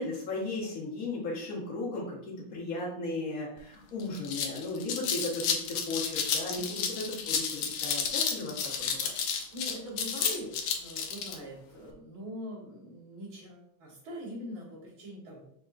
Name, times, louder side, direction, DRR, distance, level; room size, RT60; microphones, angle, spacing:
voice 1, 0.0-9.2, left 2 dB, 45° left, -6 dB, 1.9 m, -36 dB
sound 1, 3.6-3.7 4.0-11.4, left 6 dB, 80° left, 1.5 m, -31 dB
voice 2, 6.5-6.9 9.2-15.4, equal, 75° right, -5 dB, 2.6 m, -43 dB
5.2 x 4.0 x 2.5 m, 0.73 s
omnidirectional pair, 2.2 m